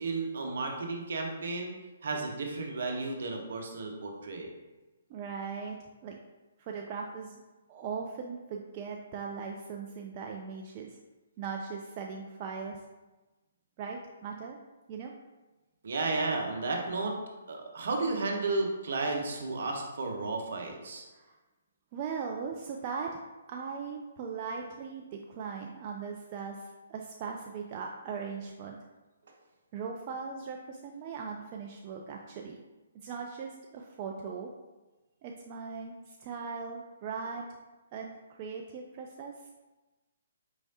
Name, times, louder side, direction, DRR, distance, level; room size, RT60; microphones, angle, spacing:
voice 1, 0.0-1.7 2.0-4.5 15.8-17.1 17.5-21.1, right 3 dB, 65° right, 2 dB, 0.9 m, -33 dB
voice 2, 5.1-5.8 6.0-6.2 6.6-7.4 7.7-11.0 11.4-12.8 13.8-14.6 14.9-15.1 21.1-21.3 21.9-23.2 23.5-28.8 29.7-32.6 33.0-34.5 35.2-37.5 37.9-39.3, right 5 dB, 35° right, 1 dB, 0.4 m, -39 dB
4.7 x 3.1 x 2.8 m, 1.1 s
figure-of-eight pair, 135°, 0 cm